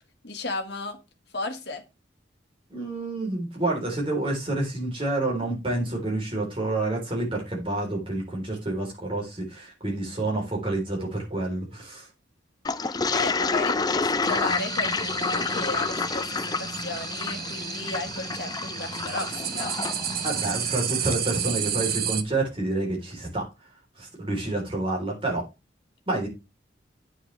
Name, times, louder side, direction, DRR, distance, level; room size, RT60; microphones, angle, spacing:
voice 1, 0.2-1.0 1.3-1.8 13.1-19.8, left 3 dB, 60° left, 6 dB, 1.6 m, -34 dB
voice 2, 2.7-12.1 20.2-23.5 24.0-25.4 26.1-26.3, right 2 dB, 30° right, -1 dB, 3.6 m, -28 dB
Toilet flush, 12.6-21.2, left 4 dB, 20° left, 0.5 m, -29 dB
sound 1, 14.2-22.2, right 7 dB, 50° right, 0.8 m, -32 dB
9.3 x 8.7 x 3.3 m, 0.26 s
head